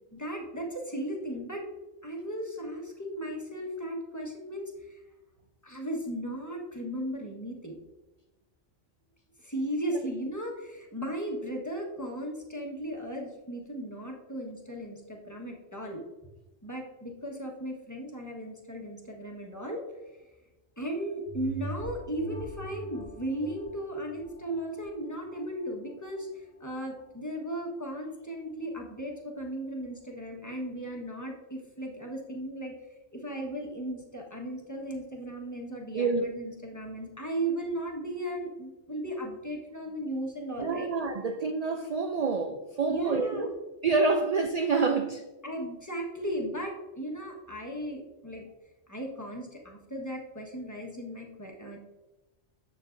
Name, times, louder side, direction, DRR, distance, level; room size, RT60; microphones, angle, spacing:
voice 1, 0.1-1.6 2.0-5.0 5.6-7.8 9.4-16.0 16.6-19.8 20.8-32.7 33.1-40.9 42.9-43.5 45.4-48.4 48.9-51.8, right 1 dB, 15° left, -1 dB, 1.3 m, -36 dB
sound 1, 21.3-26.2 26.7-26.8, right 1 dB, 85° right, 2.7 m, -43 dB
voice 2, 35.9-36.3 40.6-43.5 43.8-45.2, right 4 dB, 60° right, 6 dB, 0.4 m, -27 dB
7.9 x 7.5 x 2.6 m, 1.1 s
omnidirectional pair, 1.2 m